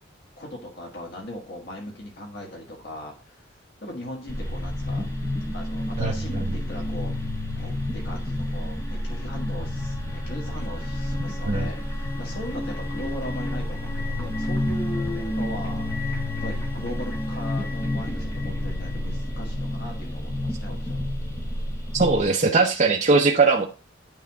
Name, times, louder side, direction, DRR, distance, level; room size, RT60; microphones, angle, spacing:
voice 1, 0.4-3.5 3.8-5.1 5.5-7.1 7.6-21.0, left 1 dB, 55° left, -1 dB, 1.6 m, -38 dB
sound 1, 4.3-22.2, left 1 dB, 15° left, 1.4 m, -29 dB
voice 2, 6.0-6.5 11.5-11.7 21.9-23.6, right 3 dB, 40° right, 2 dB, 0.7 m, -20 dB
9.2 x 3.4 x 4.7 m, 0.33 s
head